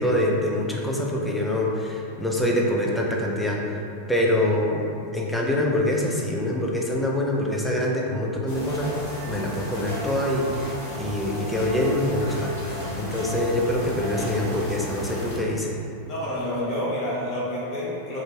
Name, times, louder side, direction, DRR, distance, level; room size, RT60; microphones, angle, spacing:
voice 1, 0.0-3.8 4.1-8.9 9.3-12.5 13.0-15.7, left 1 dB, 5° left, -2 dB, 0.4 m, -25 dB
sound 1, 8.5-15.4, equal, 60° left, 1.1 m, -34 dB
voice 2, 16.0-18.2, left 1 dB, 30° left, -8 dB, 0.9 m, -28 dB
2.5 x 2.2 x 3.0 m, 2.7 s
figure-of-eight pair, 90°, 0 cm